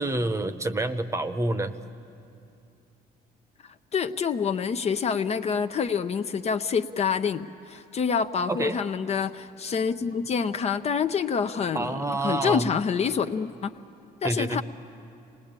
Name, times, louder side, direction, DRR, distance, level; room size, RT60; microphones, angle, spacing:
voice 1, 0.0-1.7 8.5-8.8 11.7-12.7 14.2-14.6, right 2 dB, 15° right, 10 dB, 0.9 m, -28 dB
voice 2, 3.9-12.0 12.2-13.7 14.2-14.6, left 6 dB, 40° left, 9 dB, 0.7 m, -27 dB
27.5 x 19.5 x 8.9 m, 2.6 s
cardioid pair, 110°, 17 cm